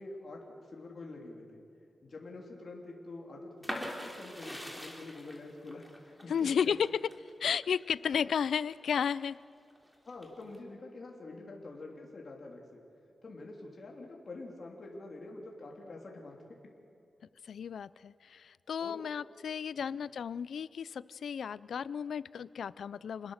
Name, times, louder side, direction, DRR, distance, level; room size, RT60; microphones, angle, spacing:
voice 1, 0.0-1.6 2.0-6.8 10.1-12.8 13.2-16.4 18.8-19.0, left 2 dB, 50° left, -1 dB, 3.2 m, -46 dB
sound 1, 3.6-9.3 9.7-10.6, equal, 5° right, 3.5 m, -43 dB
voice 2, 6.3-7.0 7.4-9.4 17.4-23.3, left 7 dB, 85° left, 19 dB, 0.4 m, -33 dB
28.5 x 20.5 x 6.5 m, 2.6 s
wide cardioid pair, 115°, 0 cm